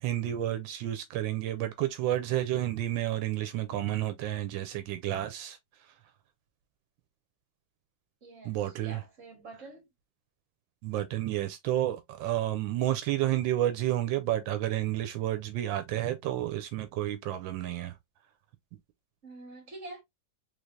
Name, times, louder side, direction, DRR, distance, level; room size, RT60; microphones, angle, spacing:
voice 1, 0.0-5.6 8.4-9.0 10.8-18.0, right 13 dB, 90° right, 1.4 m, -30 dB
voice 2, 8.2-9.8 19.2-20.0, right 2 dB, 45° right, 1.9 m, -46 dB
3.7 x 3.3 x 2.6 m
omnidirectional pair, 2.0 m